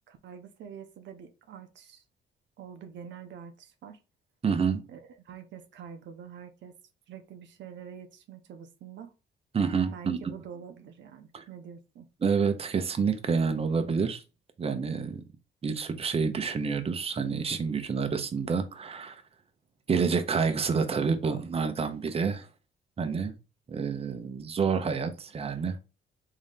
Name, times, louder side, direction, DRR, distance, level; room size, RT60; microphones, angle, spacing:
voice 1, 0.1-2.0 2.6-4.0 4.9-6.8 7.1-9.1 9.9-12.1, right 7 dB, 70° right, 0.6 m, -46 dB
voice 2, 4.4-4.8 9.5-10.3 11.3-11.4 12.2-14.2 14.6-15.2 15.6-19.2 19.9-22.5 23.0-23.3 23.7-25.8, right 5 dB, 30° right, 0.7 m, -28 dB
3.6 x 2.7 x 3.5 m
cardioid pair, 90°, 20 cm